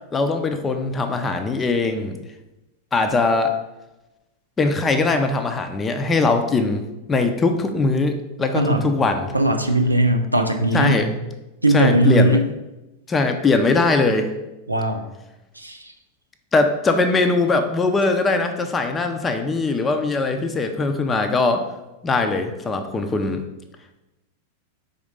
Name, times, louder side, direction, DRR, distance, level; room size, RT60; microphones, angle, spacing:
voice 1, 0.1-2.2 2.9-3.5 4.6-9.3 10.7-11.1 11.7-12.4 13.1-14.3 16.5-21.7 22.0-23.4, left 3 dB, 20° left, 6 dB, 0.6 m, -21 dB
voice 2, 8.5-8.9 9.3-11.1 11.6-12.4 14.7-15.1 15.5-15.9, right 1 dB, 85° right, 5 dB, 0.6 m, -19 dB
5.1 x 4.0 x 5.0 m, 0.99 s
figure-of-eight pair, 90°, 0 cm